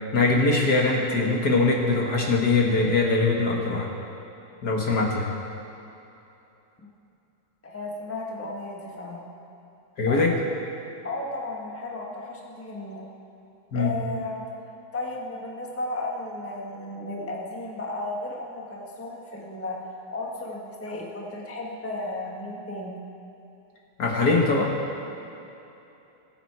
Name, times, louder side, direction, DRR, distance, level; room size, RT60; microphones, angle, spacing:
voice 1, 0.0-3.9 4.6-5.3 10.0-10.3 13.7-13.9 24.0-24.7, left 3 dB, 55° left, -1 dB, 1.7 m, -22 dB
voice 2, 7.6-9.2 10.0-10.3 11.0-13.1 13.7-14.4 14.9-19.8 20.1-23.0, left 2 dB, 10° left, -2 dB, 1.1 m, -34 dB
20.5 x 8.3 x 4.7 m, 2.9 s
omnidirectional pair, 2.3 m